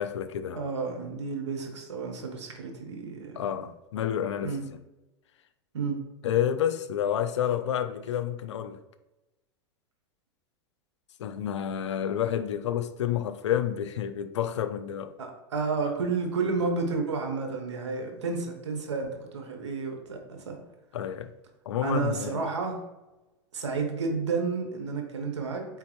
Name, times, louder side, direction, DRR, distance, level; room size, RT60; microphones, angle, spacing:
voice 1, 0.0-0.6 3.4-4.5 6.2-8.8 11.2-15.1 20.9-21.3 21.7-22.4, left 10 dB, 85° left, 0.4 m, -29 dB
voice 2, 0.5-3.6 4.4-4.6 5.7-6.0 15.2-20.6 21.8-22.8 23.5-25.7, right 4 dB, 90° right, 1.0 m, -31 dB
4.1 x 3.7 x 3.1 m
hypercardioid pair, 105°, 15 cm